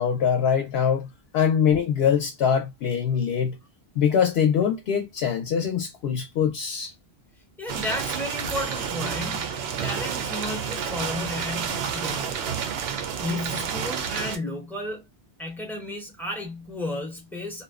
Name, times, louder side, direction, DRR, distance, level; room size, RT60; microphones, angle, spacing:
voice 1, 0.0-3.6 4.0-6.9, left 7 dB, 75° left, 0.8 m, -23 dB
voice 2, 7.6-12.5 13.2-15.0 15.4-17.6, left 1 dB, ahead, 0.6 m, -33 dB
sound 1, 7.7-14.4, right 7 dB, 70° right, 0.8 m, -30 dB
2.6 x 2.1 x 2.3 m
omnidirectional pair, 1.1 m